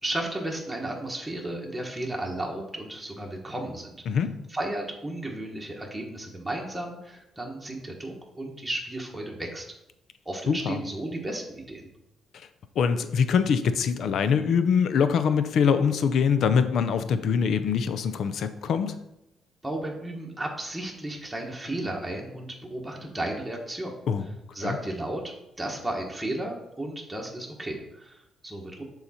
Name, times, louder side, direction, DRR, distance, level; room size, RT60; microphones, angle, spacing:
voice 1, 0.0-4.2 4.5-9.7 10.2-11.9 19.6-24.0 24.5-25.2 25.6-28.8, right 1 dB, 10° right, -1 dB, 1.3 m, -34 dB
voice 2, 10.5-10.8 12.8-18.9 24.1-24.3 24.6-24.8, left 6 dB, 70° left, 11 dB, 0.5 m, -23 dB
7.0 x 4.0 x 4.3 m, 0.86 s
cardioid pair, 90°, 0 cm